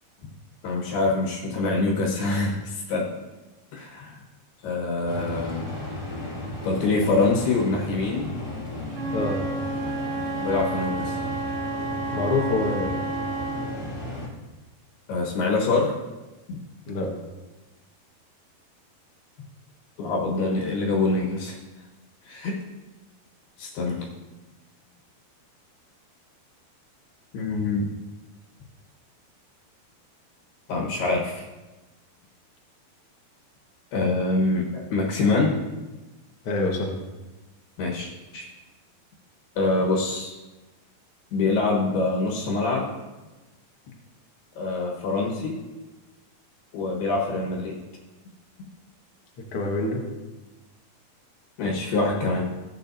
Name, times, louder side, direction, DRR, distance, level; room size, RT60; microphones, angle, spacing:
voice 1, 0.6-3.1 3.7-4.2 4.6-5.7 6.6-8.3 10.4-11.2 15.1-15.9 20.0-21.5 22.2-22.6 23.6-24.1 27.3-27.9 30.7-31.5 33.9-35.6 37.8-38.5 39.6-40.3 41.3-42.9 44.6-45.6 46.7-47.8 51.6-52.5, left 3 dB, 75° left, -2 dB, 3.3 m, -25 dB
sound 1, 5.1-14.3, left 1 dB, 25° left, 1.8 m, -34 dB
Wind instrument woodwind instrument, 8.9-13.9, right 3 dB, 85° right, 3.8 m, -31 dB
voice 2, 12.1-12.9 16.9-17.1 36.4-36.9 49.5-50.0, left 2 dB, 55° left, 0 dB, 1.6 m, -25 dB
16.0 x 8.7 x 2.7 m, 1.1 s
omnidirectional pair, 4.6 m